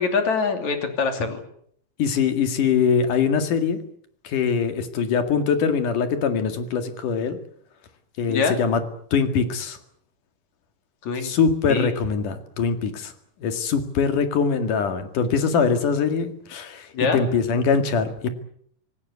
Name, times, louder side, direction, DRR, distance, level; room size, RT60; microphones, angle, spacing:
voice 1, 0.0-1.4 8.3-8.6 11.0-11.3 11.7-11.9 16.9-17.2, left 5 dB, 65° left, 6 dB, 4.2 m, -24 dB
voice 2, 2.0-3.8 4.3-7.4 8.2-8.8 9.1-9.8 11.2-13.1 13.4-16.9 17.1-18.3, left 6 dB, 90° left, 8 dB, 3.7 m, -22 dB
26.0 x 18.0 x 8.3 m, 0.66 s
omnidirectional pair, 3.5 m